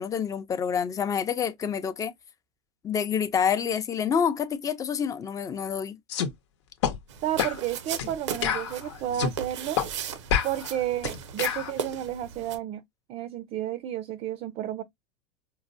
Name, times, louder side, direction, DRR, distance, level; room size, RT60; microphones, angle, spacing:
voice 1, 0.0-2.1 2.8-6.0, left 7 dB, 20° left, 0.5 m, -27 dB
sound 1, 6.1-6.3 6.8-7.0 7.4-7.6 8.0-8.1 8.4-9.4 9.8-9.9 10.3-11.7, left 8 dB, 80° left, 0.9 m, -28 dB
sound 2, 7.1-12.6, right 8 dB, 85° right, 0.7 m, -37 dB
voice 2, 7.2-9.8 10.4-12.8 13.1-14.8, right 12 dB, 45° right, 0.5 m, -31 dB
4.6 x 2.1 x 2.6 m
hypercardioid pair, 105°, 15 cm